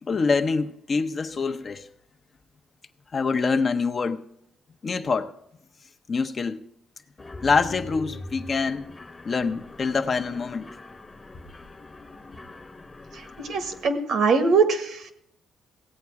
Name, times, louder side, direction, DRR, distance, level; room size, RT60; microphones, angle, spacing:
voice 1, 0.0-1.9 3.1-4.2 4.8-5.3 6.1-6.6 7.4-8.9 9.3-10.8, left 4 dB, 40° left, 0.8 m, -25 dB
Mechanisms, 7.2-13.9, left 2 dB, 25° left, 1.1 m, -43 dB
voice 2, 13.1-15.1, right 4 dB, 75° right, 1.6 m, -23 dB
16.5 x 8.4 x 4.8 m
cardioid pair, 90°, 0 cm